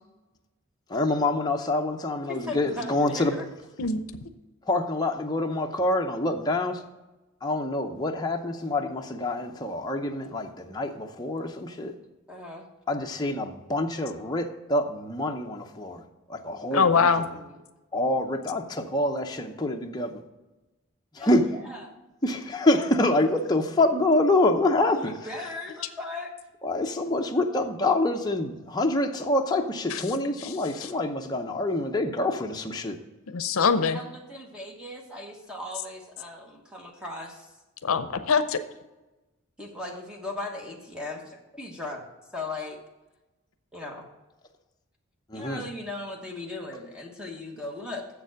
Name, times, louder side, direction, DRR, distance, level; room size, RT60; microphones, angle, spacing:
voice 1, 0.9-3.3 4.7-6.8 7.4-11.9 12.9-16.0 16.3-17.1 17.9-20.2 21.1-21.5 22.2-25.2 26.6-33.0 45.3-45.6, left 2 dB, 20° left, 2 dB, 0.7 m, -26 dB
voice 2, 2.3-3.5 12.3-12.7 16.7-17.6 21.2-21.9 24.9-26.3 33.9-37.5 39.6-42.1 42.3-42.8 43.7-44.0 45.3-48.1, left 2 dB, 5° right, 1 dB, 1.1 m, -38 dB
voice 3, 16.7-17.2 29.9-30.0 33.3-34.0 37.8-38.6, left 5 dB, 75° left, 11 dB, 0.6 m, -23 dB
7.4 x 7.0 x 6.4 m, 1.1 s
head